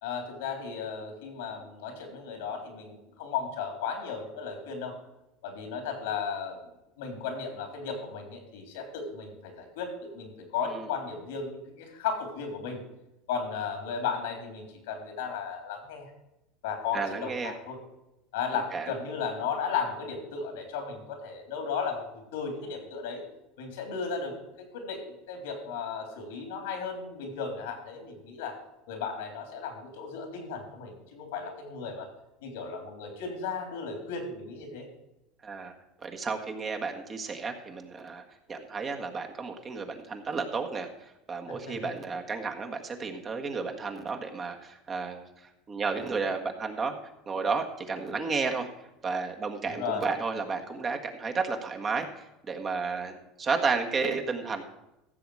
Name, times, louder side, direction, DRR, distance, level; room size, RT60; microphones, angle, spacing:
voice 1, 0.0-4.9 5.4-6.6 7.0-12.8 13.3-16.1 16.6-17.8 18.3-23.2 23.6-24.3 24.7-28.5 28.9-32.1 32.4-34.9 41.5-41.9 49.6-50.0, left 6 dB, 85° left, 4 dB, 3.5 m, -35 dB
voice 2, 16.9-17.5 18.7-18.9 35.4-35.7 36.0-47.0 47.3-48.7 49.0-54.6, right 4 dB, 30° right, 4 dB, 1.6 m, -32 dB
15.0 x 7.1 x 4.9 m, 0.91 s
supercardioid pair, 105°, 0 cm